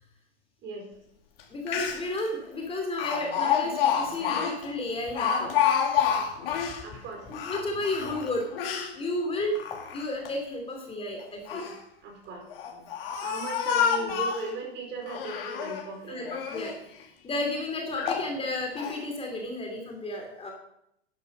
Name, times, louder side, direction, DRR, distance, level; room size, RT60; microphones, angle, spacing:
Speech, 1.4-1.5 1.7-2.2 3.0-6.8 7.3-8.9 9.5-10.3 11.2-11.8 12.5-14.5 15.1-15.9 16.3-16.8 17.3-17.4 18.0-18.3 18.8-19.0, left 8 dB, 60° left, 2.5 m, -28 dB
voice 1, 1.5-5.5 7.3-8.4 8.9-11.7 16.1-16.9 17.2-20.5, left 2 dB, 15° left, 2 dB, 2.7 m, -32 dB
voice 2, 6.8-7.2 12.0-12.4 13.2-16.3, right 3 dB, 35° right, 2 dB, 4.9 m, -37 dB
12.0 x 11.0 x 5.4 m, 0.76 s
hypercardioid pair, 105°, 32 cm